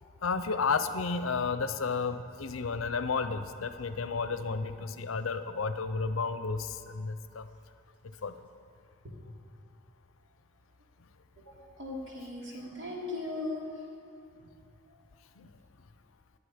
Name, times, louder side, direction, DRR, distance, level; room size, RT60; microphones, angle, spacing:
voice 1, 0.2-7.5 8.2-8.3 15.4-15.5, left 4 dB, 90° left, 11 dB, 0.7 m, -32 dB
voice 2, 11.4-13.6, left 2 dB, 65° right, -4 dB, 3.2 m, -38 dB
21.5 x 8.4 x 5.1 m, 2.7 s
head